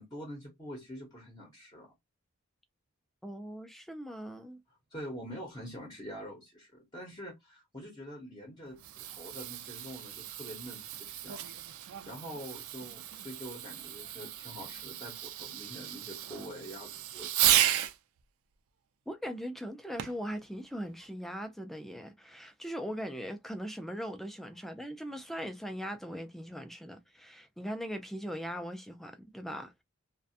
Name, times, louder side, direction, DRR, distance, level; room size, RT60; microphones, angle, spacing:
voice 1, 0.0-1.9 4.9-11.5 11.8-17.8, equal, 20° left, 0.7 m, -45 dB
voice 2, 3.2-4.6 19.1-29.8, equal, ahead, 0.3 m, -40 dB
Fireworks, 8.6-18.0 20.0-20.3 21.0-21.1, right 12 dB, 75° right, 0.4 m, -34 dB
2.4 x 2.2 x 2.6 m
head